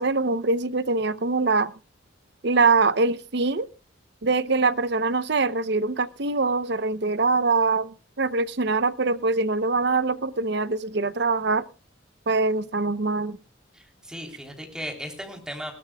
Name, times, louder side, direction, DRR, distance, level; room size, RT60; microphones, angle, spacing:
voice 1, 0.0-1.7 2.4-3.7 4.2-11.6 12.3-13.4, right 3 dB, 60° right, 0.8 m, -23 dB
voice 2, 13.7-15.7, equal, 5° right, 3.6 m, -36 dB
21.0 x 16.5 x 2.3 m
head